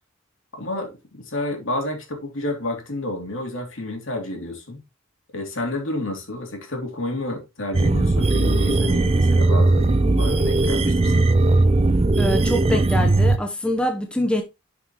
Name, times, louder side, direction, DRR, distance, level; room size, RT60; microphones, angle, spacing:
voice 1, 0.5-4.8 5.3-11.3, left 1 dB, 65° left, 3.0 m, -30 dB
sound 1, 7.7-13.4, right 2 dB, 30° right, 0.5 m, -18 dB
voice 2, 12.2-14.4, equal, 5° left, 0.9 m, -24 dB
11.5 x 5.8 x 3.0 m
head